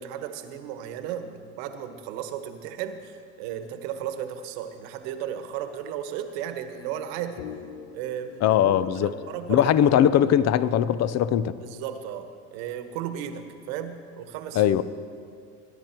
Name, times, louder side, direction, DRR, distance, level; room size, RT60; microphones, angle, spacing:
voice 1, 0.0-7.5 7.9-8.6 9.0-9.6 11.6-14.7, right 9 dB, 75° right, 1.3 m, -35 dB
sound 1, 6.8-11.1, left 8 dB, 85° left, 0.9 m, -42 dB
voice 2, 8.4-9.1 9.5-11.6 14.5-14.8, left 10 dB, 40° left, 0.6 m, -20 dB
21.0 x 10.5 x 4.5 m
supercardioid pair, 90°, 39 cm